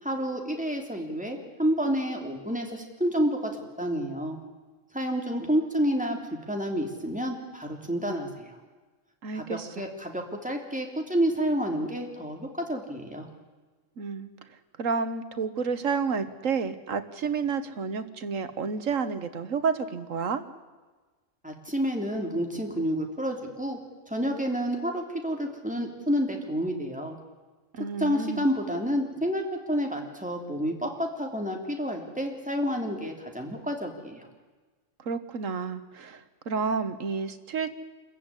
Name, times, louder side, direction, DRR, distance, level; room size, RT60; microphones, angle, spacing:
voice 1, 0.0-3.5 3.8-4.4 4.9-6.2 6.5-8.6 9.3-13.3 21.4-23.8 24.1-27.2 28.0-34.3, equal, 5° right, 2 dB, 3.2 m, -29 dB
voice 2, 9.2-9.8 14.0-20.4 27.7-28.5 35.0-37.7, right 5 dB, 75° right, 11 dB, 1.7 m, -30 dB
27.5 x 15.0 x 9.9 m, 1.3 s
omnidirectional pair, 1.4 m